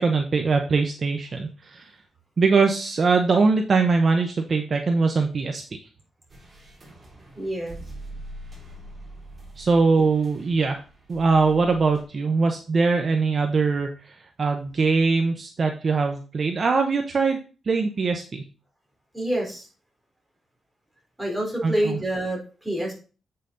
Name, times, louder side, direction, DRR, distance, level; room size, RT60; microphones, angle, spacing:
voice 1, 0.0-1.9 2.4-5.6 9.6-10.8 11.1-17.4 17.7-18.4 21.6-22.0, right 4 dB, 45° right, 4 dB, 0.9 m, -22 dB
sound 1, 6.3-12.0, right 1 dB, 30° right, 3.5 m, -43 dB
voice 2, 7.4-7.8 19.1-19.7 21.2-22.9, right 1 dB, 5° right, -2 dB, 4.0 m, -27 dB
8.2 x 5.8 x 3.9 m, 0.35 s
cardioid pair, 105°, 0 cm